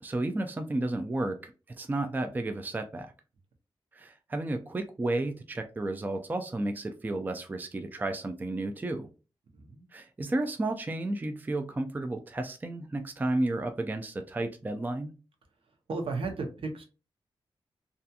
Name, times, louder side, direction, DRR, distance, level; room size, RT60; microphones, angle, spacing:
voice 1, 0.0-1.5 1.8-3.1 3.9-9.1 9.9-15.1, right 2 dB, 20° right, 6 dB, 0.4 m, -32 dB
voice 2, 9.5-9.9 15.9-16.8, right 3 dB, 75° right, 4 dB, 0.7 m, -34 dB
2.7 x 2.4 x 2.2 m, 0.33 s
wide cardioid pair, 95°, 9 cm